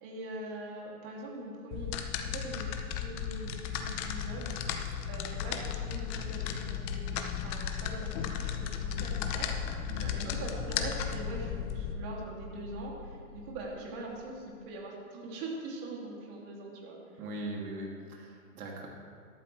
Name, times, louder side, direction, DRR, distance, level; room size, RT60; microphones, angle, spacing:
voice 1, 0.0-1.9 2.2-2.7 3.0-4.5 5.1-9.5 9.8-17.2, right 2 dB, 40° right, -2 dB, 2.9 m, -42 dB
sound 1, 1.7-11.9, left 9 dB, 30° left, 0.7 m, -35 dB
sound 2, 7.6-14.4, left 3 dB, 70° left, 2.5 m, -44 dB
voice 2, 9.9-10.4 17.2-18.9, right 1 dB, 70° right, -1 dB, 2.9 m, -40 dB
13.0 x 11.5 x 3.4 m, 2.1 s
hypercardioid pair, 135°, 44 cm